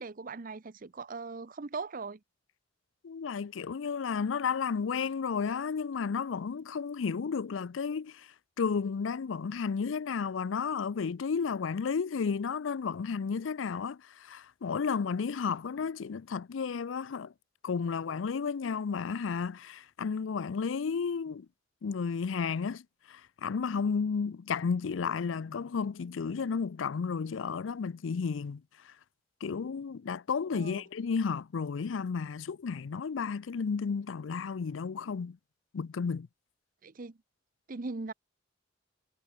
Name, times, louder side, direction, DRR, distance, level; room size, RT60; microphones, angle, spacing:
voice 1, 0.0-2.2 30.5-30.8 36.8-37.2 37.7-38.1, right 4 dB, 45° right, 0.8 m, -40 dB
voice 2, 3.0-8.3 8.6-17.3 17.6-21.5 21.8-28.9 29.4-35.4 35.7-36.3, left 5 dB, 85° left, 0.5 m, -32 dB
head